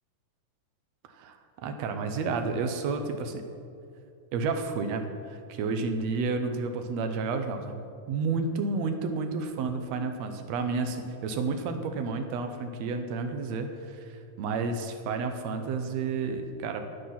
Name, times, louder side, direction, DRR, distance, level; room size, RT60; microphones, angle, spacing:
voice 1, 1.1-3.4 4.3-7.8 8.1-16.9, right 4 dB, 75° right, 6 dB, 1.6 m, -31 dB
10.0 x 9.3 x 5.8 m, 2.5 s
omnidirectional pair, 3.9 m